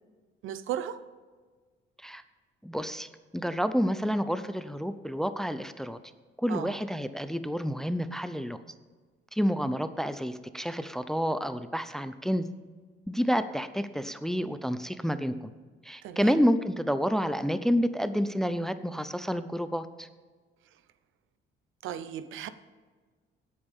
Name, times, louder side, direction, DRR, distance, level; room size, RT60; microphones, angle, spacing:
voice 1, 0.4-1.0 6.5-6.7 16.0-16.4 21.8-22.5, right 10 dB, 80° right, 0.8 m, -35 dB
voice 2, 2.6-3.1 3.3-6.0 6.4-8.6 9.3-12.4 13.1-15.3 15.8-20.1, equal, ahead, 0.5 m, -29 dB
18.0 x 8.7 x 3.6 m
cardioid pair, 155°, 20 cm